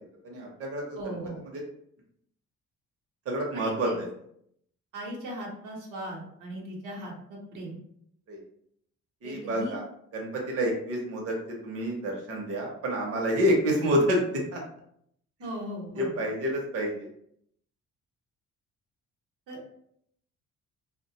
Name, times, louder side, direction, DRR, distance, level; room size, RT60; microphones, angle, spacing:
voice 1, 0.2-1.0 1.5-1.6 3.3-4.1 8.3-8.4 9.2-9.8 10.1-11.3 11.6-14.6 15.9-17.1, equal, 50° right, -1 dB, 0.7 m, -28 dB
voice 2, 1.0-1.4 3.5-4.0 4.9-7.8 9.2-9.8 15.4-16.2 19.5-19.7, equal, 85° right, -2 dB, 0.9 m, -38 dB
2.4 x 2.1 x 2.7 m, 0.70 s
cardioid pair, 90°, 30 cm